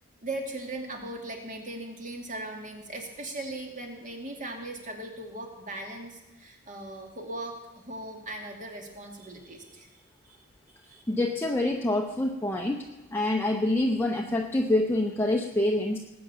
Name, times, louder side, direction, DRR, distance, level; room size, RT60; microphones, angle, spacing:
voice 1, 0.2-9.9 10.3-10.4 10.8-11.0, right 2 dB, 35° right, 2 dB, 2.5 m, -39 dB
voice 2, 11.1-12.8 13.1-16.0, left 1 dB, 10° left, 2 dB, 0.8 m, -26 dB
19.0 x 8.7 x 7.0 m, 1.1 s
head